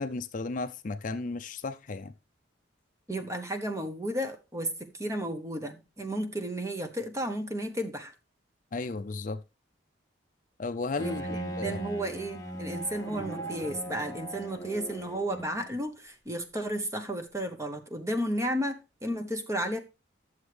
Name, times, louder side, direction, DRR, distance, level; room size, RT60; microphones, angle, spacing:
voice 1, 0.0-2.1 8.7-9.4 10.6-11.8, left 3 dB, 40° left, 0.4 m, -34 dB
voice 2, 3.1-8.1 11.0-19.8, right 1 dB, 15° right, 0.9 m, -33 dB
Bowed string instrument, 11.0-15.8, right 1 dB, 15° left, 1.1 m, -38 dB
11.0 x 7.1 x 3.3 m
head